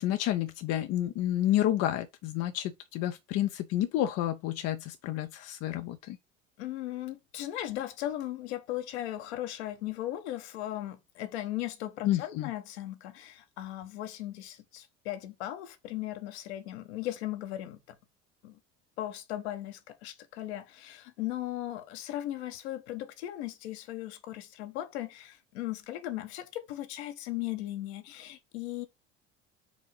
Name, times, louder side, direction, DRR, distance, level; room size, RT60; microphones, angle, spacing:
voice 1, 0.0-6.2 12.0-12.5, left 13 dB, 45° left, 0.6 m, -30 dB
voice 2, 6.6-18.0 18.4-18.6 19.0-28.9, left 14 dB, 65° left, 1.1 m, -37 dB
5.0 x 3.7 x 5.4 m
figure-of-eight pair, 65°, 35 cm